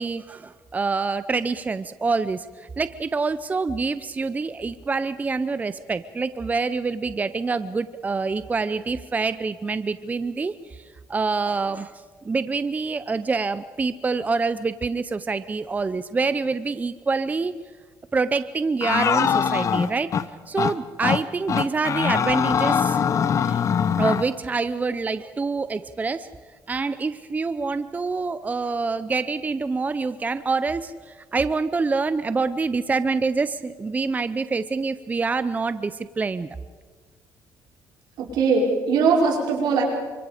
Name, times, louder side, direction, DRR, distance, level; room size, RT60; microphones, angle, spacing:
voice 1, 0.0-17.6 18.1-20.1 20.5-23.6 24.0-26.3 26.7-36.5, right 4 dB, 20° right, 13 dB, 0.7 m, -26 dB
sound 1, 18.8-20.3 20.6-20.7 21.0-21.2 21.5-24.3, left 7 dB, 45° left, 1.0 m, -22 dB
voice 2, 38.2-39.8, right 4 dB, 80° right, -1 dB, 5.2 m, -20 dB
28.5 x 25.5 x 5.1 m, 1.5 s
cardioid pair, 105°, 7 cm